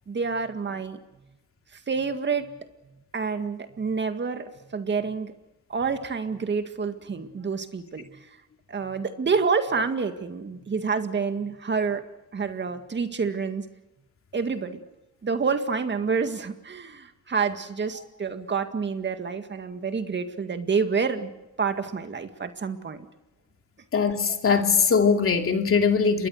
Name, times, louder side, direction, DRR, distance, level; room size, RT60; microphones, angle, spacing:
voice 1, 0.1-1.0 1.9-2.6 3.1-5.3 5.7-8.3 8.7-12.0 12.3-13.6 14.3-14.8 15.2-21.3 21.6-23.1, right 5 dB, 35° right, 1.9 m, -28 dB
voice 2, 23.9-26.3, left 5 dB, 45° left, 2.6 m, -21 dB
27.0 x 22.5 x 6.5 m
cardioid pair, 90°, 30 cm